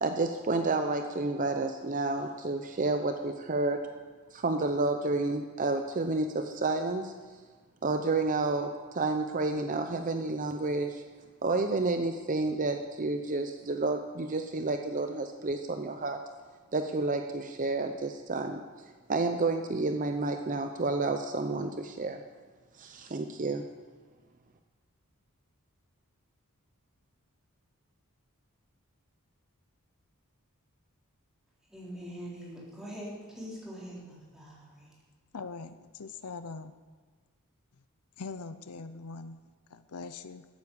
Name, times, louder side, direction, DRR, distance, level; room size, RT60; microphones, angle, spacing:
voice 1, 0.0-3.8 4.3-7.1 7.8-11.0 11.4-16.2 16.7-18.6 19.1-22.2 22.8-23.7, right 3 dB, 35° right, 6 dB, 0.6 m, -30 dB
voice 2, 31.7-34.9, equal, 5° right, -6 dB, 3.7 m, -43 dB
voice 3, 35.3-36.7 38.2-40.5, left 4 dB, 90° left, 12 dB, 0.7 m, -42 dB
13.5 x 8.3 x 7.0 m, 1.4 s
head